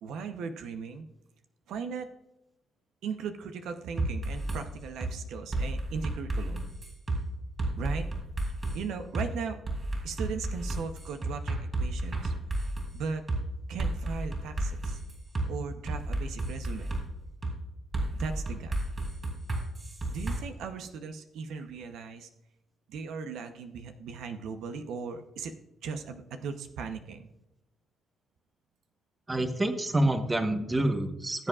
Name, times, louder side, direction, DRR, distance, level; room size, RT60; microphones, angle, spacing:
voice 1, 0.0-1.1 1.7-2.1 3.0-6.7 7.8-8.1 8.7-9.6 10.0-12.3 12.9-13.2 13.7-15.0 15.5-17.0 18.1-18.7 20.1-22.3 22.9-25.6 25.8-27.3, right 5 dB, 80° right, 7 dB, 0.8 m, -37 dB
sound 1, 4.0-4.6 5.0-5.1 5.5-7.2 7.6-8.8 9.1-9.3 9.7-12.9 13.3-13.4 13.8-15.5 15.9-17.0 17.4-17.6 17.9-20.4, right 2 dB, 35° right, 3.9 m, -32 dB
voice 2, 29.3-31.5, right 1 dB, 20° right, 7 dB, 1.1 m, -27 dB
18.0 x 7.6 x 2.4 m, 0.90 s
cardioid pair, 90°, 0 cm